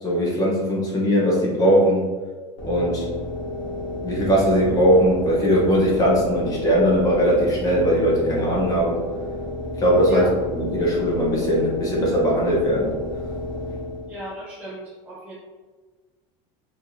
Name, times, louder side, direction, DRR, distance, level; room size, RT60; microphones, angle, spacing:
voice 1, 0.0-2.0 2.6-3.1 4.0-9.0 9.8-10.3 10.5-12.9, equal, 20° left, -4 dB, 1.0 m, -20 dB
sound 1, 2.6-14.3, left 1 dB, 50° left, 1.1 m, -31 dB
voice 2, 14.1-15.4, left 3 dB, 10° right, -7 dB, 0.5 m, -34 dB
4.4 x 3.1 x 2.7 m, 1.4 s
cardioid pair, 155°, 16 cm